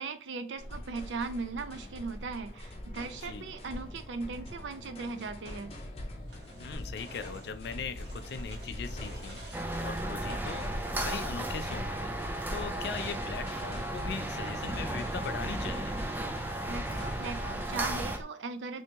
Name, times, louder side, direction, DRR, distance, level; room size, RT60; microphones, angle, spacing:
voice 1, 0.0-5.7 16.7-18.8, right 4 dB, 85° right, 10 dB, 0.5 m, -38 dB
sound 1, 0.6-18.2, left 1 dB, 35° left, 0.7 m, -42 dB
voice 2, 3.1-3.5 6.6-9.4 9.8-12.1 12.5-16.0, left 5 dB, 60° left, 11 dB, 0.3 m, -40 dB
sound 2, 6.2-11.7, right 1 dB, 65° right, 1.1 m, -51 dB
sound 3, 9.5-18.2, right 1 dB, 10° right, 0.3 m, -35 dB
3.4 x 2.7 x 2.8 m, 0.38 s
head